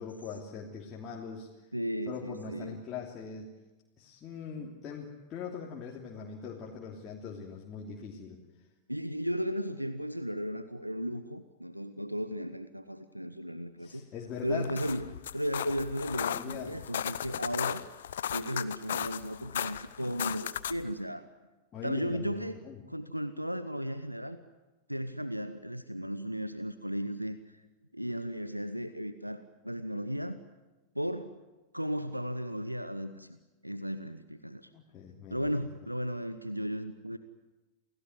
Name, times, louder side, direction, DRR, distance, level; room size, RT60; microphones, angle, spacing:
voice 1, 0.0-1.5 2.1-3.5 4.0-8.4 13.8-14.8 16.2-16.8 21.7-22.8 34.7-35.5, left 6 dB, 30° left, -3 dB, 3.1 m, -41 dB
voice 2, 1.7-2.8 4.5-4.7 8.9-14.0 14.4-15.0 15.3-17.8 18.2-21.2 21.8-22.6 22.9-24.4 24.9-27.6 27.9-30.4 30.9-31.4 31.7-33.4 33.6-34.7 35.3-37.2, equal, 90° right, 12 dB, 1.0 m, -35 dB
sound 1, 14.5-20.9, left 10 dB, 60° left, 0.9 m, -36 dB
29.0 x 17.5 x 9.5 m, 1.2 s
figure-of-eight pair, 90°, 0 cm